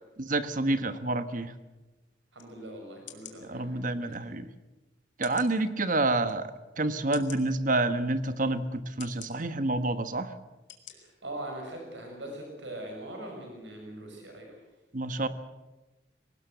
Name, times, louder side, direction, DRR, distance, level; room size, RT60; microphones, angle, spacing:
voice 1, 0.2-1.5 3.4-4.5 5.2-6.5 6.8-10.3 14.9-15.3, right 2 dB, 45° right, 11 dB, 1.3 m, -28 dB
voice 2, 2.3-4.3 10.9-14.6, right 1 dB, 85° right, 2 dB, 6.1 m, -42 dB
sound 1, 2.4-2.5 3.1-3.4 4.1-4.2 5.2-5.5 6.2-6.3 7.1-7.4 8.2-8.3 9.0-9.3 10.0-10.2 10.7-10.9 11.4-11.5, left 11 dB, 90° left, 2.7 m, -46 dB
22.0 x 18.5 x 7.9 m, 1.1 s
head